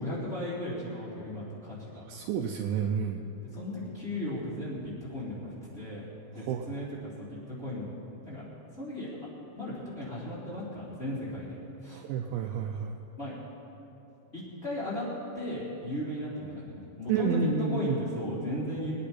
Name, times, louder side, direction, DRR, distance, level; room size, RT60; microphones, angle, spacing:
voice 1, 0.0-2.0 3.5-6.9 7.2-7.9 8.2-8.4 8.8-9.1 9.6-12.0 13.2-13.4 14.3-15.0 15.3-18.9, left 1 dB, 15° left, -10 dB, 3.1 m, -36 dB
voice 2, 2.0-3.2 6.3-6.7 11.9-13.0 17.1-18.0, right 7 dB, 85° right, 3 dB, 2.6 m, -30 dB
23.5 x 9.4 x 4.3 m, 2.9 s
omnidirectional pair, 5.5 m